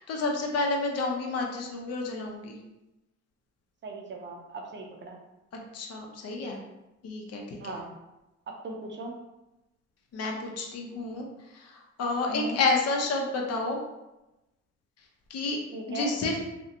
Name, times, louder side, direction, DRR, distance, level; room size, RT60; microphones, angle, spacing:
voice 1, 0.0-2.6 5.7-6.6 7.0-7.6 10.1-11.3 11.5-13.8 15.3-15.6 15.9-16.4, left 3 dB, 55° left, 1 dB, 0.6 m, -30 dB
voice 2, 3.8-5.2 7.6-7.9 8.6-9.2 12.3-12.6 15.7-16.1, right 2 dB, 40° right, 1 dB, 0.5 m, -38 dB
2.6 x 2.1 x 2.5 m, 0.97 s
cardioid pair, 90°, 30 cm